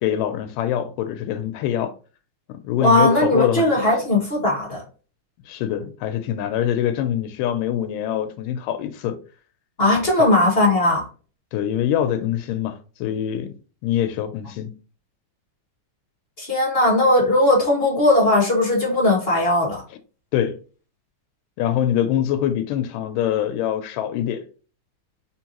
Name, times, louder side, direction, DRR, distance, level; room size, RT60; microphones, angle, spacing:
voice 1, 0.0-2.0 2.5-3.7 5.5-9.2 10.2-10.3 11.5-13.5 13.8-14.7 20.3-20.6 21.6-24.5, left 10 dB, 85° left, 2.2 m, -24 dB
voice 2, 2.8-4.8 9.8-11.1 16.4-19.8, left 1 dB, 40° left, 0.8 m, -18 dB
4.5 x 3.9 x 2.9 m
omnidirectional pair, 3.7 m